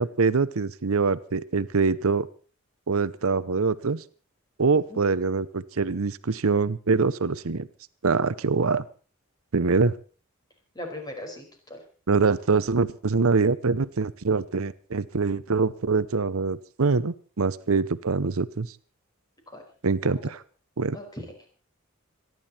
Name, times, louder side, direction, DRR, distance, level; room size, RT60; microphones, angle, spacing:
voice 1, 0.0-2.3 2.9-4.0 4.6-7.7 8.0-8.8 9.5-9.9 12.1-18.7 19.8-20.4 20.8-21.0, right 4 dB, 80° right, 15 dB, 0.8 m, -24 dB
voice 2, 10.7-11.8 19.5-19.6 20.0-20.2 20.9-21.5, left 1 dB, 20° left, 2 dB, 5.0 m, -39 dB
26.5 x 11.0 x 4.3 m, 0.38 s
head